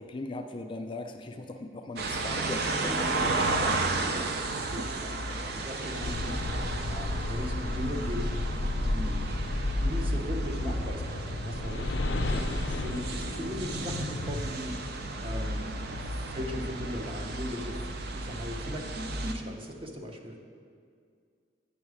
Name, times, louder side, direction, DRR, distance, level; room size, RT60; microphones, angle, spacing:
voice 1, 0.0-3.9, left 2 dB, 30° left, 5 dB, 0.4 m, -39 dB
sound 1, 2.0-19.3, right 2 dB, 60° right, 0.5 m, -33 dB
voice 2, 3.9-4.3 4.5-8.3 8.8-9.2 9.8-20.4, equal, 30° right, 2 dB, 0.8 m, -39 dB
sound 2, 6.0-14.4, left 2 dB, 85° left, 0.5 m, -32 dB
9.1 x 5.4 x 4.8 m, 2.2 s
head